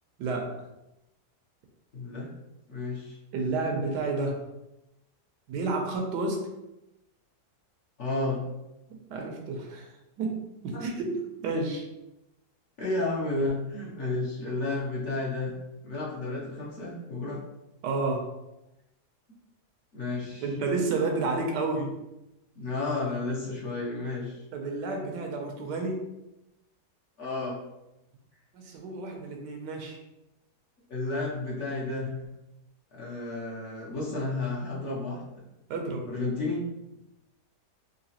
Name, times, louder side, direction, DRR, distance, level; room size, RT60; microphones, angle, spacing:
voice 1, 0.2-0.7 3.3-4.4 5.5-6.5 8.9-9.9 10.2-11.9 12.8-12.9 17.8-18.3 20.4-21.9 24.5-26.0 28.5-30.0 35.7-36.1, right 3 dB, 80° right, 3 dB, 1.3 m, -31 dB
voice 2, 1.9-2.3 2.7-3.2 8.0-8.4 10.7-10.8 12.8-15.5 15.8-17.4 19.9-20.4 22.6-24.4 27.2-27.6 30.9-32.1 32.9-35.2 36.1-36.6, left 2 dB, 55° left, -5 dB, 1.0 m, -32 dB
3.9 x 2.6 x 2.8 m, 0.91 s
omnidirectional pair, 1.8 m